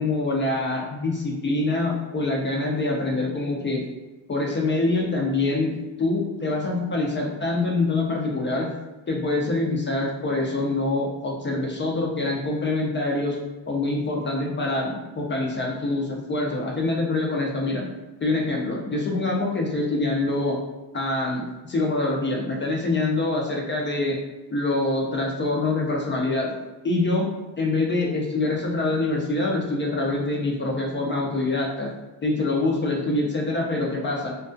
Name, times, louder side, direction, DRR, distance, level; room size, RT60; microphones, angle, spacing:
voice 1, 0.0-3.8 4.3-8.7 9.1-13.4 13.7-17.9 18.2-20.6 20.9-24.2 24.5-26.6 26.8-27.3 27.6-31.9 32.2-34.3, left 2 dB, 25° left, -1 dB, 0.4 m, -25 dB
2.2 x 2.2 x 2.5 m, 1.1 s
cardioid pair, 85°, 48 cm